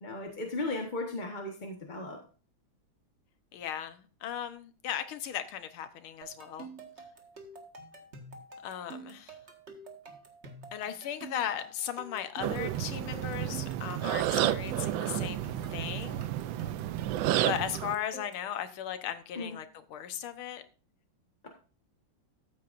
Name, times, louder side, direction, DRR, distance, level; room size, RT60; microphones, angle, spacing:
voice 1, 0.0-2.2 19.4-19.6, left 2 dB, 25° left, 1.2 m, -36 dB
voice 2, 3.5-6.7 8.6-9.4 10.7-16.2 17.4-20.6, left 10 dB, 75° left, 1.8 m, -37 dB
sound 1, 6.2-18.5, right 3 dB, 35° right, 1.7 m, -47 dB
sound 2, 12.4-18.0, right 12 dB, 75° right, 1.2 m, -31 dB
14.0 x 8.7 x 2.6 m
omnidirectional pair, 2.4 m